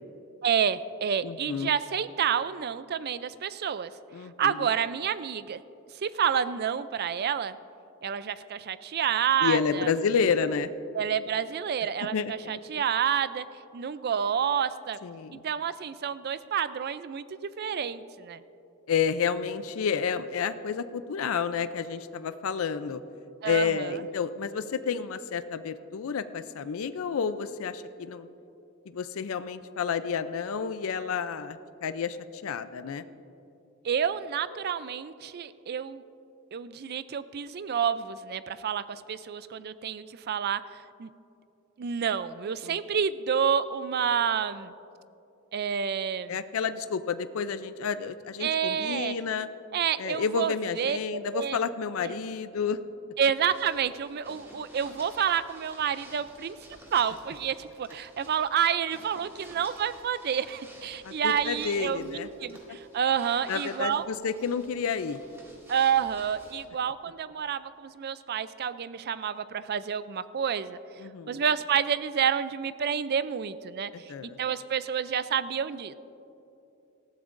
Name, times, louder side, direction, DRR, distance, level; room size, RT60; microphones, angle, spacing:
voice 1, 0.4-3.9 4.4-5.6 5.9-7.6 8.0-9.9 10.9-13.5 13.7-15.0 15.3-18.4 23.4-23.9 33.8-36.0 36.5-41.1 41.8-44.7 45.5-46.4 48.4-49.2 49.7-51.0 51.3-51.6 52.0-52.1 53.2-56.6 56.9-64.0 65.7-70.8 71.3-75.9, right 8 dB, 50° right, 15 dB, 0.4 m, -29 dB
voice 2, 1.2-1.7 4.1-4.6 9.4-10.7 12.1-12.3 15.0-15.4 18.9-23.0 23.4-28.3 28.9-33.0 42.6-42.8 46.3-49.5 50.0-52.8 61.0-62.3 62.7-62.8 63.5-65.2 71.0-71.4 73.9-74.4, left 6 dB, 75° left, 12 dB, 0.4 m, -30 dB
sound 1, 53.4-66.7, equal, 10° right, 2.1 m, -51 dB
18.5 x 14.5 x 2.6 m, 2.8 s
head